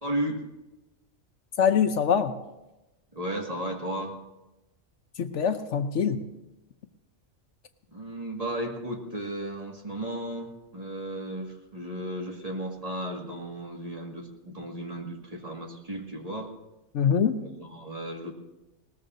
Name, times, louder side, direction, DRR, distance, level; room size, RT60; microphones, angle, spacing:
voice 1, 0.0-0.4 3.1-4.2 7.9-16.5 17.4-18.3, right 1 dB, 30° right, 0 dB, 2.0 m, -34 dB
voice 2, 1.6-2.3 5.2-6.2 16.9-17.4, left 7 dB, 70° left, 9 dB, 1.1 m, -24 dB
20.5 x 19.5 x 2.7 m, 1.0 s
omnidirectional pair, 1.3 m